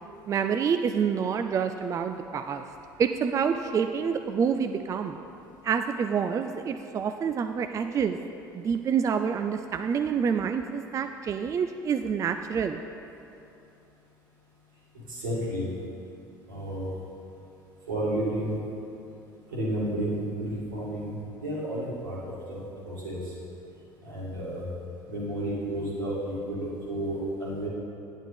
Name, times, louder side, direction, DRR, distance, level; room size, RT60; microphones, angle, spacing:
voice 1, 0.3-2.6 3.0-5.2 5.6-8.2 8.5-12.8, right 7 dB, 30° right, 7 dB, 0.3 m, -27 dB
voice 2, 15.1-15.7 16.5-16.9 17.9-18.6 19.5-22.2 22.5-23.2 24.0-24.6 25.1-27.7, right 1 dB, 75° right, -7 dB, 2.2 m, -31 dB
9.3 x 9.0 x 3.4 m, 2.8 s
figure-of-eight pair, 60°, 11 cm